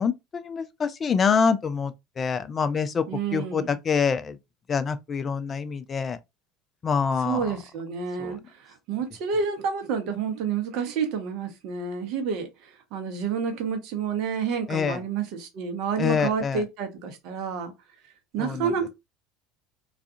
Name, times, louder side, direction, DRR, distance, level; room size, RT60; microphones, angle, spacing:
voice 1, 0.0-3.0 3.3-4.4 4.7-6.2 6.8-7.5 8.2-8.4 14.7-15.0 16.0-16.6 18.4-18.7, left 6 dB, 30° left, 0.4 m, -26 dB
voice 2, 3.1-3.8 7.2-17.7 18.3-18.9, right 6 dB, 55° right, 0.8 m, -29 dB
2.4 x 2.3 x 2.6 m
hypercardioid pair, 70°, 0 cm